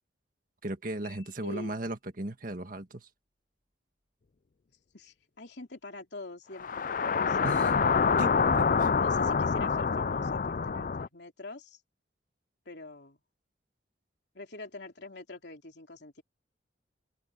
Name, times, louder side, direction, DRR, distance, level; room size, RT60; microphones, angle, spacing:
voice 1, 0.6-3.1 7.4-7.7 8.2-8.3 8.6-8.9, right 1 dB, 45° right, 1.8 m, -36 dB
Piano, 1.0-2.1, left 10 dB, 15° left, 2.5 m, -59 dB
voice 2, 1.4-1.8 4.9-8.1 8.9-11.8 12.6-13.2 14.3-16.2, left 2 dB, 60° left, 3.5 m, -45 dB
sound 1, 6.6-11.1, left 5 dB, 45° left, 0.4 m, -26 dB
open air
head